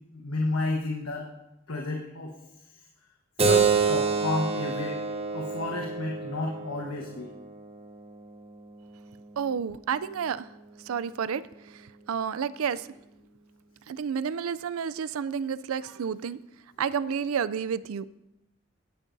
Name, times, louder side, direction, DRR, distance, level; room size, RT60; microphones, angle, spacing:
voice 1, 0.1-1.3 1.7-2.3 3.4-5.0 5.3-7.3, left 2 dB, 80° left, 0 dB, 1.3 m, -31 dB
Keyboard (musical), 3.4-8.5, right 5 dB, 30° right, 1.0 m, -28 dB
voice 2, 9.4-10.5 10.9-11.4 12.1-12.8 13.9-16.4 16.8-18.0, right 7 dB, 85° right, 17 dB, 0.4 m, -30 dB
17.5 x 10.5 x 2.7 m, 0.88 s
head